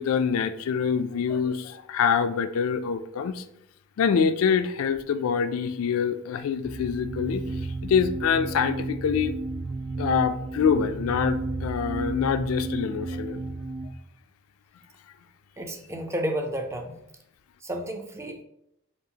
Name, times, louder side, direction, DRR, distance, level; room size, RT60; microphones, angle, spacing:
voice 1, 0.0-3.4 4.0-7.4 7.8-9.3 10.0-13.4, left 6 dB, 85° left, 11 dB, 0.3 m, -25 dB
sound 1, 6.6-13.9, right 2 dB, 50° right, 0.7 m, -32 dB
voice 2, 15.6-17.0 17.6-18.4, right 1 dB, 15° right, 4 dB, 0.4 m, -31 dB
5.3 x 2.4 x 2.8 m, 0.79 s
head